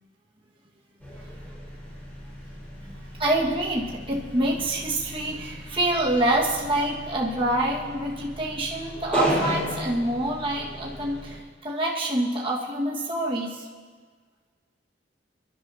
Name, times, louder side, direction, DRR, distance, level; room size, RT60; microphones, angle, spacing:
sound 1, 1.0-11.4, equal, 10° left, 4.4 m, -34 dB
voice 1, 2.8-13.7, right 1 dB, 30° right, -4 dB, 1.6 m, -26 dB
27.0 x 11.5 x 2.8 m, 1.5 s
head